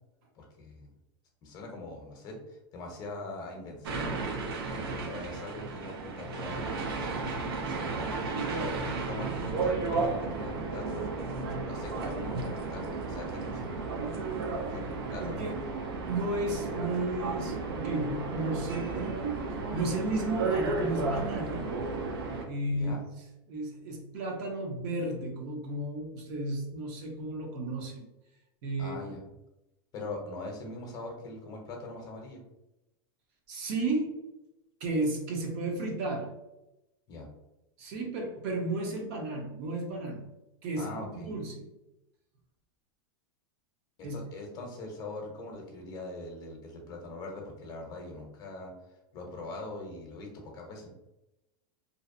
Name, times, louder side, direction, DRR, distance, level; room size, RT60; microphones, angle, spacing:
voice 1, 0.3-0.9 1.4-4.1 4.7-8.1 8.7-11.1 11.6-13.8 14.6-15.6 22.7-23.0 28.8-29.2 29.9-32.4 37.1-37.3 40.8-41.3 44.0-48.7 49.1-50.9, left 2 dB, 30° left, 1 dB, 0.7 m, -42 dB
sound 1, 3.8-22.4, right 3 dB, 85° right, 0.5 m, -33 dB
voice 2, 15.2-15.5 16.0-19.3 19.7-21.7 22.5-22.9 23.5-28.1 28.6-29.0 33.5-34.2 34.8-36.3 37.8-40.3 40.6-41.6 44.0-44.2, right 2 dB, 45° right, 1 dB, 0.7 m, -33 dB
2.6 x 2.0 x 2.5 m, 0.94 s
supercardioid pair, 150°, 12 cm